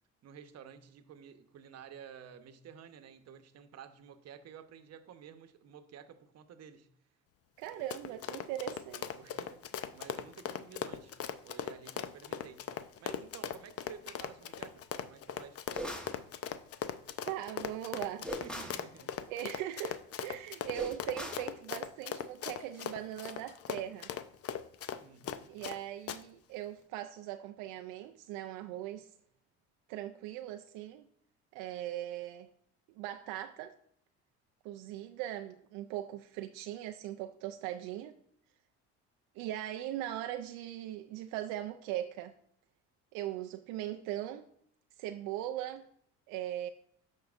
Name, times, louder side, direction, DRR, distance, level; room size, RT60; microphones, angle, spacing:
voice 1, 0.2-6.9 8.1-8.6 9.2-9.6 9.9-11.1 11.4-12.6 13.0-15.6 18.2-19.1 25.0-25.6, right 8 dB, 55° right, 0.9 m, -52 dB
Run, 7.6-25.8 26.1-26.2, left 9 dB, 50° left, 0.6 m, -39 dB
voice 2, 7.6-9.1 17.2-18.3 19.3-24.1 25.5-29.1 29.9-31.1 31.5-32.5 33.0-33.7 34.6-38.1 39.3-42.3 43.1-44.4 45.0-45.9 46.3-46.7, right 12 dB, 85° right, 0.5 m, -40 dB
sound 1, 15.7-16.2 18.2-18.8 20.7-21.5, equal, 5° left, 0.9 m, -40 dB
sound 2, 22.2-24.9, left 4 dB, 70° left, 1.0 m, -60 dB
13.0 x 4.7 x 2.5 m
supercardioid pair, 85°, 31 cm